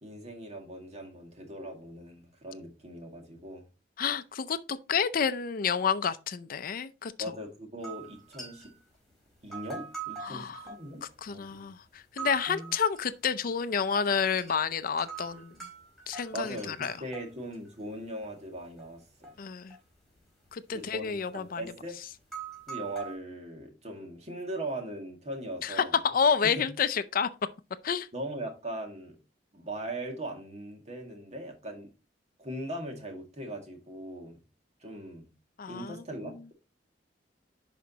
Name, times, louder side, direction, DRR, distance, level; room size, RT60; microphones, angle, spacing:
voice 1, 0.0-3.6 7.2-8.7 9.4-11.7 12.2-12.7 16.3-19.4 20.7-21.9 22.7-26.0 26.4-26.6 28.1-29.2 29.5-31.9 32.4-34.4 34.8-35.3 35.7-36.5, right 1 dB, 40° right, 2.0 m, -40 dB
voice 2, 4.0-7.1 10.2-10.6 11.2-15.5 16.1-16.9 19.4-19.8 20.5-21.6 25.6-27.3 27.8-28.1 35.6-36.0, left 6 dB, 55° left, 0.5 m, -29 dB
sound 1, 7.8-8.9 9.3-11.5 12.0-13.0 13.4-14.0 14.3-14.6 15.0-18.3 18.6-19.3 19.7-20.5 20.7-21.0 21.7-21.8 22.2-23.1, right 5 dB, ahead, 4.3 m, -43 dB
10.5 x 5.1 x 2.8 m
head